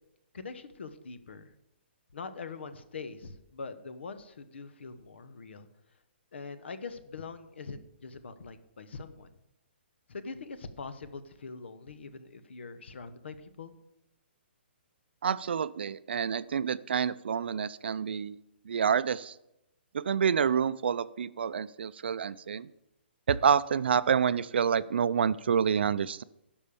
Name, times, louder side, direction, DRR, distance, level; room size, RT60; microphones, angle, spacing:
voice 1, 0.3-1.5 2.1-5.7 6.3-9.3 10.1-13.7, left 4 dB, 70° left, 12 dB, 1.1 m, -43 dB
voice 2, 15.2-18.4 18.7-19.3 19.9-22.7 23.3-26.2, right 7 dB, 65° right, 17 dB, 0.4 m, -28 dB
11.5 x 5.4 x 7.0 m, 0.88 s
hypercardioid pair, 175°, 6 cm